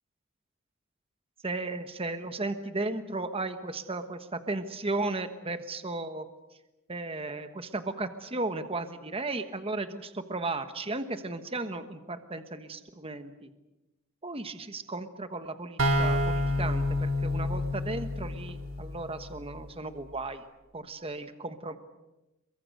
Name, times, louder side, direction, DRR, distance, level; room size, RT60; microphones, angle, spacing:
voice 1, 1.4-6.3 6.9-13.5 14.2-20.4 20.7-21.8, right 2 dB, 25° right, 9 dB, 1.3 m, -35 dB
sound 1, 15.8-19.4, left 1 dB, 85° right, 3.2 m, -29 dB
29.0 x 23.5 x 6.7 m, 1.0 s
head